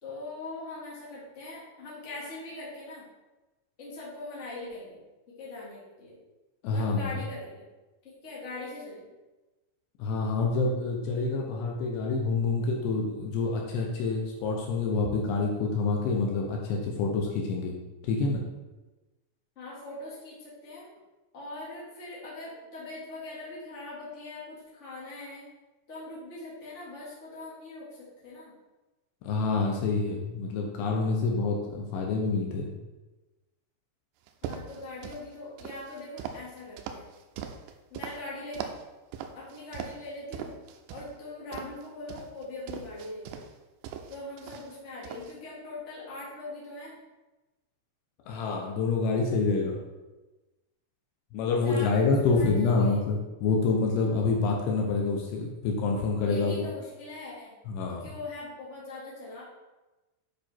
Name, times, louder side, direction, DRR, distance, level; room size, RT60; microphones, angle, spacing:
voice 1, 0.0-3.1 3.8-5.0 5.3-6.2 6.7-7.6 8.0-9.1 19.6-20.9 21.3-25.5 25.9-28.5 34.4-37.1 37.9-38.7 39.3-40.5 40.9-43.4 44.1-47.0 51.6-53.0 56.2-57.5 58.0-59.4, left 2 dB, 20° left, -7 dB, 1.9 m, -41 dB
voice 2, 6.6-7.1 10.0-17.8 18.0-18.4 29.2-32.7 48.3-49.8 51.3-56.7 57.7-58.0, left 4 dB, 75° left, 0 dB, 2.9 m, -27 dB
sound 1, 34.3-35.2 35.6-38.2 38.5-38.8 39.1-40.1 40.3-41.1 41.5-43.5 43.8-44.8 45.0-45.4, right 8 dB, 85° right, 2.7 m, -40 dB
9.4 x 5.0 x 4.5 m, 1.1 s
omnidirectional pair, 5.2 m